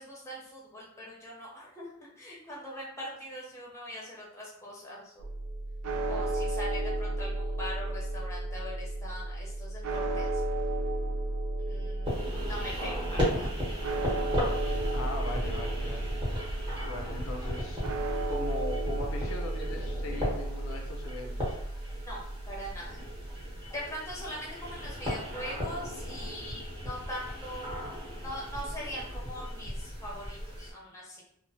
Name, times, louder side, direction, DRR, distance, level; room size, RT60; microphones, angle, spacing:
voice 1, 0.0-5.3 6.1-10.4 11.6-13.5 15.8-16.0 22.1-22.2 22.5-23.0 23.7-27.9 28.2-31.2, equal, 15° left, -4 dB, 0.6 m, -41 dB
sound 1, 5.2-23.6, right 2 dB, 85° right, 0.4 m, -34 dB
sound 2, 12.0-30.7, equal, 20° right, 0.8 m, -36 dB
voice 2, 14.9-16.2 16.8-17.8 18.2-21.6, left 2 dB, 70° left, 1 dB, 0.5 m, -40 dB
2.9 x 2.0 x 2.7 m, 0.73 s
head